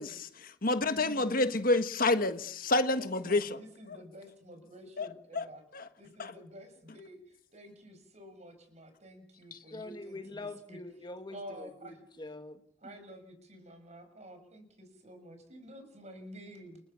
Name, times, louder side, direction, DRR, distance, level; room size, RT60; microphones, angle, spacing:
voice 1, 0.0-3.6 3.9-4.0 5.0-5.1 5.3-5.5 5.7-5.9 6.2-6.3 9.5-9.6, left 2 dB, 50° left, 1.5 m, -29 dB
voice 2, 0.6-1.5 2.9-5.6 6.0-10.8 11.3-12.0 12.8-16.8, equal, 40° right, 6.7 m, -50 dB
voice 3, 9.7-11.4 11.8-12.6, left 2 dB, 25° left, 1.8 m, -43 dB
29.0 x 20.0 x 6.9 m
head